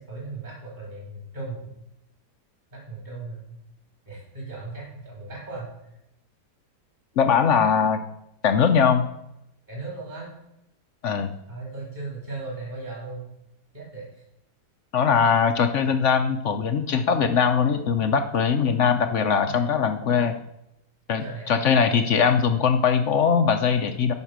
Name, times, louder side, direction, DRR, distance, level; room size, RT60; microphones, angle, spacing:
voice 1, 0.0-1.6 2.7-3.4 4.1-5.7 9.7-10.3 11.5-13.2 13.7-14.2 19.4-19.8 21.2-21.9, right 3 dB, 25° right, -4 dB, 4.0 m, -37 dB
voice 2, 7.2-8.0 8.4-9.1 11.0-11.3 14.9-20.4 21.1-24.1, left 6 dB, 65° left, 8 dB, 0.7 m, -21 dB
9.6 x 5.8 x 6.0 m, 0.85 s
omnidirectional pair, 1.8 m